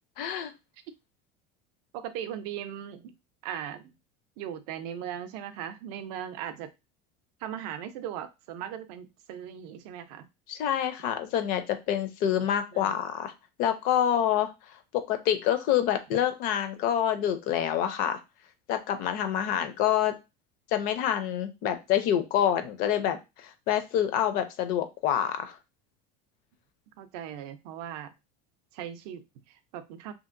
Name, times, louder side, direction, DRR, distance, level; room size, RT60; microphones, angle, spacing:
voice 1, 0.2-0.5 10.5-13.3 13.6-14.5 15.1-18.2 18.7-20.1 20.7-25.6, left 10 dB, 45° left, 9 dB, 0.4 m, -27 dB
voice 2, 1.9-3.1 3.4-3.9 4.4-6.7 7.4-10.3 12.7-13.0 19.6-19.7 27.0-28.1 28.7-30.1, right 10 dB, 70° right, 10 dB, 0.5 m, -38 dB
2.8 x 2.5 x 2.5 m, 0.25 s
cardioid pair, 165°, 21 cm